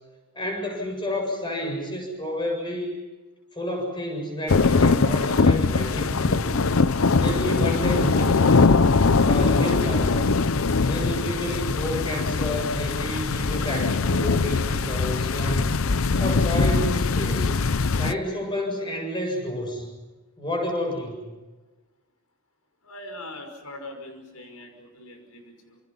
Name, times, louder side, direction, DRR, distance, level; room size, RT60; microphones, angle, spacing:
voice 1, 0.3-3.0 3.5-6.6 7.1-8.8 9.2-10.5 10.8-15.9 16.2-19.9 20.4-21.3, equal, 20° left, 2 dB, 7.5 m, -30 dB
sound 1, 4.5-18.1, left 4 dB, 70° left, 0.7 m, -21 dB
voice 2, 22.8-25.8, left 1 dB, 90° left, 5 dB, 5.6 m, -41 dB
28.5 x 27.5 x 5.6 m, 1.2 s
head